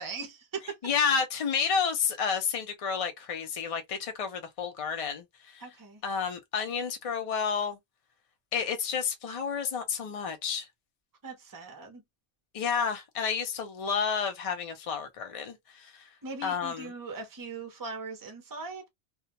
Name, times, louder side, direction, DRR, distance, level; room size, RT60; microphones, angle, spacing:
voice 1, 0.0-0.8 5.6-6.0 11.2-12.0 16.2-18.9, right 4 dB, 25° right, 0.5 m, -40 dB
voice 2, 0.8-5.6 6.0-7.8 8.5-10.7 12.5-16.1 16.4-16.9, left 6 dB, 40° left, 0.5 m, -30 dB
2.4 x 2.2 x 2.8 m
omnidirectional pair, 1.2 m